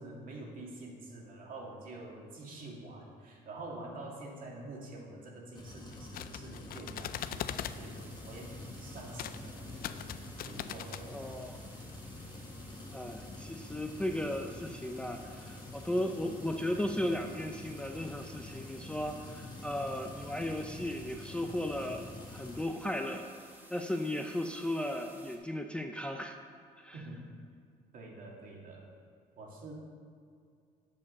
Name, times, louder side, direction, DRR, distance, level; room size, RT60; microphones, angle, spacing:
voice 1, 0.0-11.4 26.9-27.3 27.9-28.8 29.4-29.7, right 2 dB, 55° right, -1 dB, 2.2 m, -47 dB
sound 1, 5.5-22.7, left 2 dB, 25° left, 1.2 m, -47 dB
sound 2, 5.9-7.8 9.1-9.4 9.7-11.0, left 11 dB, 60° left, 0.4 m, -40 dB
sound 3, 7.1-25.4, right 1 dB, 10° right, 1.5 m, -56 dB
voice 2, 11.1-11.6 12.9-23.3 23.7-26.4 26.8-27.0, left 1 dB, 5° left, 3 dB, 0.5 m, -36 dB
7.5 x 7.1 x 5.4 m, 2.3 s
cardioid pair, 110°, 17 cm